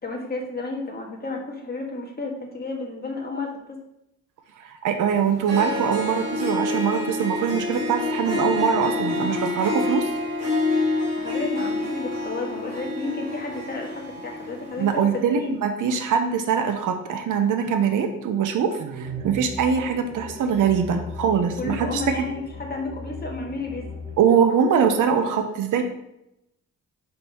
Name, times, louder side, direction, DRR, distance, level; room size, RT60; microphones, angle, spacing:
voice 1, 0.0-3.8 8.3-8.5 11.2-15.6 21.6-23.9, left 3 dB, 30° left, 0 dB, 1.7 m, -32 dB
voice 2, 4.6-10.1 14.8-22.3 24.2-25.8, right 7 dB, 80° right, 6 dB, 0.8 m, -23 dB
Harp, 5.2-5.3 5.5-15.0, left 2 dB, 55° right, 2.3 m, -27 dB
sound 1, 19.0-24.2, left 4 dB, 15° right, 1.6 m, -38 dB
5.3 x 4.6 x 5.4 m, 0.84 s
cardioid pair, 95°, 31 cm